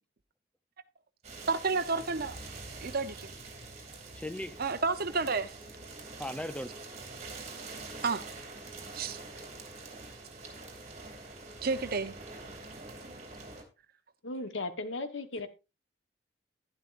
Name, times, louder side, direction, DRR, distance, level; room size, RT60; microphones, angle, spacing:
sound 1, 1.2-13.6, right 3 dB, 40° right, 2.7 m, -45 dB
voice 1, 1.5-2.4 2.8-3.3 4.6-5.5 8.0-8.2 8.9-9.2 11.6-12.1, right 4 dB, 55° right, 0.8 m, -30 dB
voice 2, 4.1-4.6 6.2-6.7, left 1 dB, 5° left, 0.7 m, -37 dB
voice 3, 14.2-15.5, left 2 dB, 85° left, 1.3 m, -36 dB
11.5 x 11.0 x 2.6 m
head